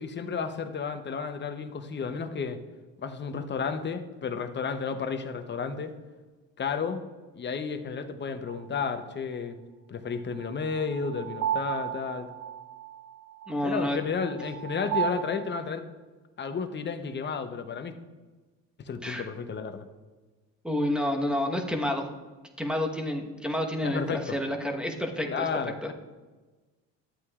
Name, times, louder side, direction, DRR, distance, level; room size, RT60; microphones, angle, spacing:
voice 1, 0.0-2.6 3.0-5.9 6.6-7.0 7.3-9.6 9.9-12.3 13.6-15.9 16.4-17.9 18.8-19.9 23.8-24.4 25.2-25.9, left 5 dB, 30° left, 8 dB, 0.8 m, -32 dB
sound 1, 8.5-8.6 10.4-15.2, right 10 dB, 85° right, 1.4 m, -33 dB
voice 2, 13.5-14.0 19.0-19.3 20.6-22.1 22.6-25.9, left 1 dB, ahead, 2 dB, 1.1 m, -29 dB
12.5 x 8.3 x 2.4 m, 1.3 s
supercardioid pair, 85°, 37 cm